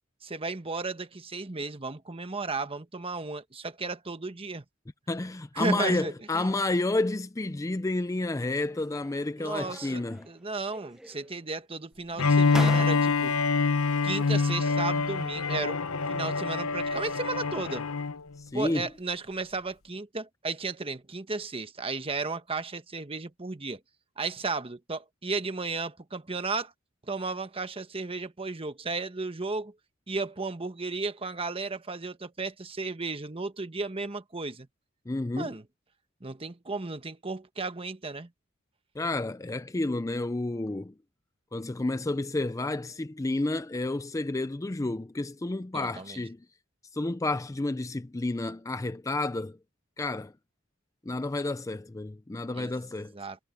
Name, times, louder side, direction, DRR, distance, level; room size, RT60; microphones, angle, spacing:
voice 1, 0.2-4.6 5.6-6.5 9.4-10.0 10.3-13.4 14.0-17.8 18.5-23.8 24.2-26.7 27.1-29.7 30.1-34.7 35.4-35.6 36.2-38.3 45.7-46.2 52.6-52.7 53.1-53.4, right 3 dB, 25° right, 1.2 m, -34 dB
voice 2, 5.1-10.3 18.4-18.9 35.1-35.5 39.0-40.9 41.5-46.4 46.9-49.6 50.0-50.3 51.1-53.1, left 2 dB, 15° left, 0.4 m, -30 dB
sound 1, 8.7-9.3 9.6-10.4 10.7-11.5 12.1-12.2 12.5-13.5, equal, 5° right, 0.8 m, -40 dB
Bowed string instrument, 12.2-18.2, left 4 dB, 90° left, 0.9 m, -26 dB
head